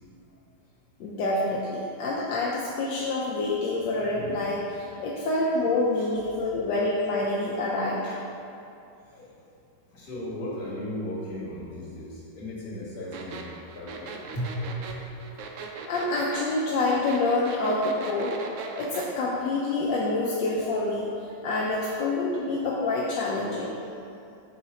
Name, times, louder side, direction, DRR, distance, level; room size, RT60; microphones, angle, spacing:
voice 1, 1.0-8.0 15.8-18.3 18.8-21.1 21.4-23.7, left 2 dB, 80° left, -4 dB, 1.3 m, -27 dB
voice 2, 9.9-13.5 13.8-14.5 14.9-15.0, equal, 60° left, -7 dB, 1.9 m, -36 dB
sound 1, 13.1-19.1, right 5 dB, 85° right, 0.6 m, -38 dB
5.9 x 3.9 x 4.1 m, 2.6 s
omnidirectional pair, 1.9 m